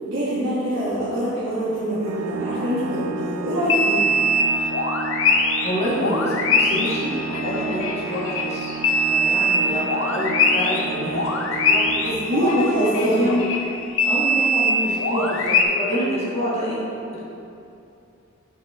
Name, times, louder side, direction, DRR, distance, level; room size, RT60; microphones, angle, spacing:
voice 1, 0.1-4.0 12.0-13.3, equal, 60° right, -11 dB, 1.4 m, -23 dB
Organ, 2.0-12.9, right 5 dB, 85° right, 0.4 m, -32 dB
sound 1, 3.7-5.7 6.0-10.9 11.1-15.6, left 1 dB, 65° left, 0.5 m, -22 dB
voice 2, 5.6-8.7 9.0-11.9 13.0-13.4 14.0-16.8 17.1-17.2, equal, 30° left, -7 dB, 1.3 m, -27 dB
6.2 x 5.9 x 3.4 m, 2.7 s
head